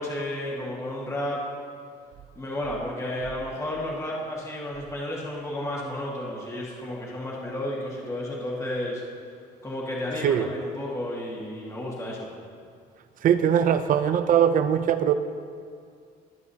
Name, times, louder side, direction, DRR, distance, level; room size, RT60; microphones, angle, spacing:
voice 1, 0.0-1.4 2.3-9.0 9.6-12.3, left 1 dB, 20° left, 1.8 m, -32 dB
voice 2, 13.2-15.1, right 9 dB, 55° right, 0.5 m, -21 dB
20.0 x 7.2 x 2.8 m
cardioid pair, 110°, 17 cm